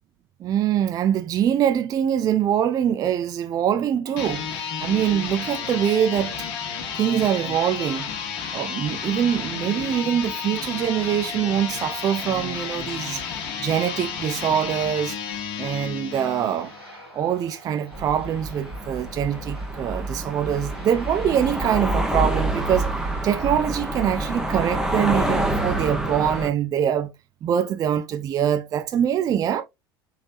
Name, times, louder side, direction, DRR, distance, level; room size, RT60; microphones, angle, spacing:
voice 1, 0.4-6.5 7.0-8.1 8.5-13.2 13.6-15.2 15.6-16.7 17.1-27.1 27.4-29.6, right 9 dB, 30° right, 0.4 m, -24 dB
sound 1, 4.1-16.8, left 7 dB, 50° left, 1.2 m, -32 dB
Aircraft, 16.1-24.7, equal, 90° right, 1.6 m, -46 dB
sound 2, 17.9-26.5, right 1 dB, 5° right, 0.9 m, -27 dB
4.6 x 3.2 x 2.6 m
figure-of-eight pair, 75°, 13 cm